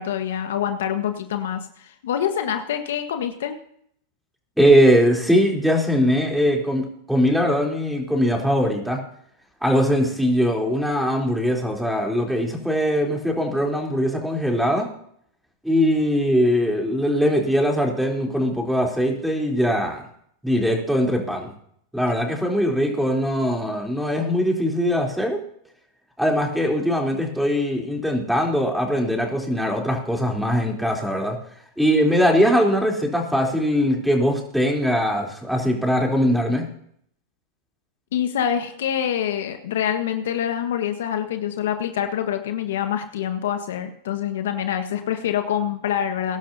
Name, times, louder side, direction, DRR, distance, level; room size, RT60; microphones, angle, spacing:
voice 1, 0.0-3.6 38.1-46.4, left 9 dB, 70° left, 7 dB, 1.4 m, -26 dB
voice 2, 4.6-9.0 9.6-14.9 15.6-20.1 20.4-21.5 21.9-25.4 26.2-31.4 31.8-36.6, equal, ahead, 0 dB, 3.6 m, -21 dB
22.0 x 11.5 x 2.8 m, 0.66 s
hypercardioid pair, 105°, 0 cm